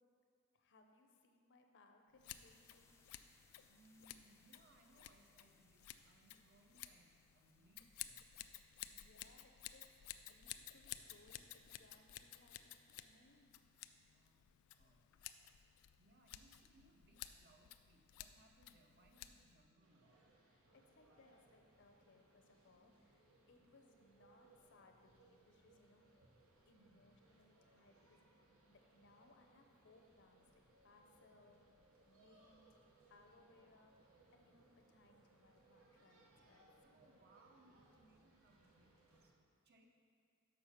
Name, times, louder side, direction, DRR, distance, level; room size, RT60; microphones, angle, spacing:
voice 1, 0.5-2.9 8.6-13.6 20.4-23.2 23.5-26.2 26.7-31.6 32.1-32.8 33.1-33.9 34.3-36.7, left 2 dB, 60° left, 4 dB, 0.7 m, -69 dB
Scissors, 2.2-19.7, left 12 dB, 80° left, 0.3 m, -55 dB
sound 1, 2.3-9.2, left 4 dB, 15° left, 0.4 m, -75 dB
voice 2, 3.7-8.4 14.0-15.1 16.0-20.2 23.6-23.7 26.7-27.0 31.3-31.6 36.8-39.9, right 2 dB, 50° right, 2 dB, 0.8 m, -70 dB
Parque Miguel Servet Huesca mediodía, 19.8-39.3, right 2 dB, 85° right, 1.0 m, -70 dB
6.7 x 5.6 x 5.6 m, 2.3 s
head